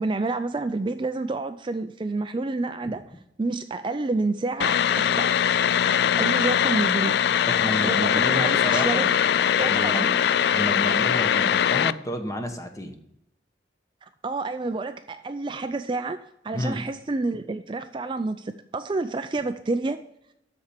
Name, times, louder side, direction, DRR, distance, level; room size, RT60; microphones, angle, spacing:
voice 1, 0.0-3.1 3.4-5.3 6.2-7.2 7.8-9.1 9.4-10.2 14.0-16.2 16.4-20.0, right 3 dB, 25° right, 0.4 m, -29 dB
sound 1, 4.6-11.9, left 8 dB, 65° left, 0.3 m, -21 dB
voice 2, 7.5-9.1 9.6-10.1 10.5-13.0 16.5-16.8, equal, 20° left, 1.1 m, -31 dB
12.5 x 4.4 x 6.6 m
head